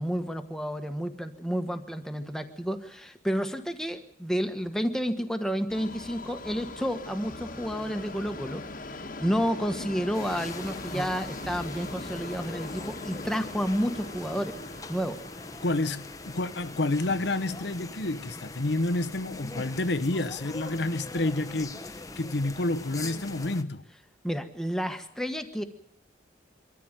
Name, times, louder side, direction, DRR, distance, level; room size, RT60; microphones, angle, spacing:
voice 1, 0.0-14.6 14.9-15.2 24.2-25.6, equal, 5° left, 1.4 m, -30 dB
Subway metro underground, 5.7-19.8 20.1-20.2 21.1-21.2 21.4-21.5 22.2-22.3, left 2 dB, 45° left, 1.5 m, -42 dB
sound 1, 10.1-23.6, left 2 dB, 20° left, 0.9 m, -42 dB
voice 2, 15.6-23.9, left 2 dB, 65° left, 0.9 m, -29 dB
24.5 x 14.0 x 9.1 m
head